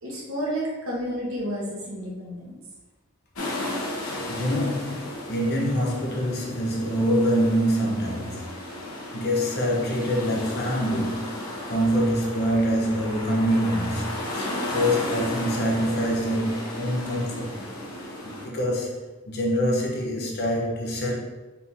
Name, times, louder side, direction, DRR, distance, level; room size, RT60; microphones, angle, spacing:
voice 1, 0.0-2.6, equal, 75° right, 1.4 m, -31 dB
sound 1, 3.3-18.5, left 1 dB, 80° left, 1.0 m, -34 dB
voice 2, 4.3-8.5 9.1-11.4 11.7-17.6 18.4-21.1, equal, 50° left, 0.8 m, -25 dB
4.3 x 3.7 x 2.7 m
head